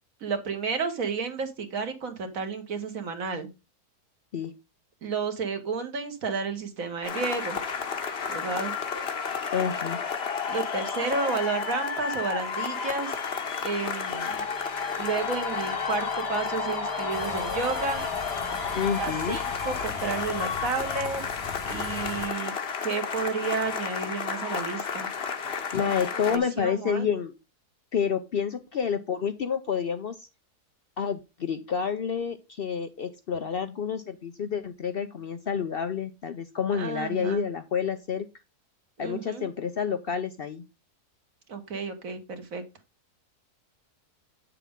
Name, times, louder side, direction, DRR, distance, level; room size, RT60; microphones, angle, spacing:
voice 1, 0.2-3.5 5.0-7.6 8.3-8.7 10.5-13.2 13.6-14.5 15.0-18.0 18.9-21.2 21.7-22.5 22.8-25.1 25.8-27.1 36.7-37.4 39.0-39.4 41.5-42.6, right 4 dB, 60° right, 7 dB, 1.7 m, -31 dB
sound 1, 7.0-26.4, left 6 dB, 45° left, 1.0 m, -31 dB
voice 2, 9.5-10.0 18.7-19.4 25.7-27.3 27.9-30.3 31.0-38.3 39.0-40.6, left 7 dB, 65° left, 10 dB, 0.5 m, -29 dB
sound 2, 13.5-19.9, right 7 dB, 25° right, 0.6 m, -44 dB
sound 3, 17.1-22.3, left 4 dB, 90° left, 3.2 m, -41 dB
8.5 x 6.7 x 3.6 m, 0.26 s
omnidirectional pair, 1.7 m